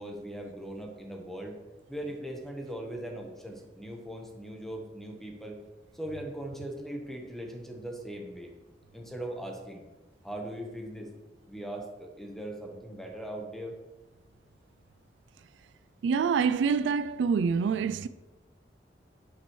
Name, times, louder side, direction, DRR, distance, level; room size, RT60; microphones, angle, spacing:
voice 1, 0.0-1.6 1.9-5.6 5.9-8.5 8.9-9.8 10.2-11.1 11.5-13.7, right 1 dB, ahead, 1.1 m, -39 dB
voice 2, 16.0-18.1, right 6 dB, 85° right, 0.3 m, -26 dB
9.3 x 8.2 x 3.1 m
head